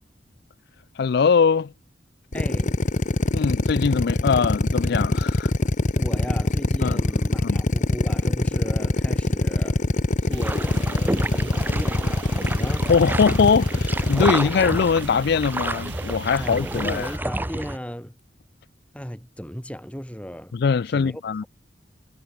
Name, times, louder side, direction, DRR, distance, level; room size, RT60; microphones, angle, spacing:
voice 1, 1.0-1.7 3.3-5.5 6.8-7.0 7.4-7.6 12.9-17.1 20.5-21.4, left 5 dB, 65° left, 0.4 m, -21 dB
Drill, 2.3-14.3, left 2 dB, 45° left, 0.9 m, -23 dB
voice 2, 2.3-2.8 5.9-9.9 10.2-12.9 16.4-18.2 18.9-20.5 20.9-21.5, equal, 5° left, 4.0 m, -36 dB
sound 1, 10.3-17.2, right 3 dB, 80° right, 1.7 m, -39 dB
sound 2, 10.4-17.8, right 1 dB, 10° right, 0.7 m, -30 dB
head